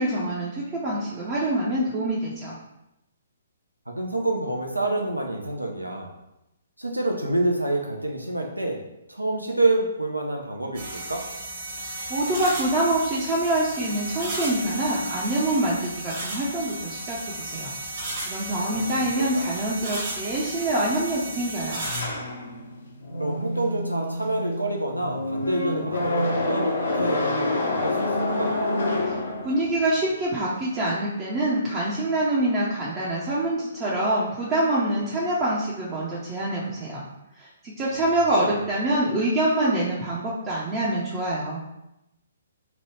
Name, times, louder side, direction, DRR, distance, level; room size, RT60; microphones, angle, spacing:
voice 1, 0.0-2.6 12.1-17.7 18.3-21.8 29.4-37.0 37.4-41.6, right 1 dB, 25° right, -7 dB, 0.6 m, -25 dB
voice 2, 3.9-6.1 6.8-8.8 9.1-11.2 18.7-18.8 19.2-19.4 23.2-28.5 38.3-38.5, right 2 dB, 90° right, 1 dB, 0.5 m, -27 dB
sound 1, 10.7-22.0, right 2 dB, 40° right, 1.0 m, -34 dB
sound 2, 21.8-29.9, left 2 dB, 65° left, 0.7 m, -27 dB
2.9 x 2.3 x 3.1 m, 0.88 s
figure-of-eight pair, 125°, 0 cm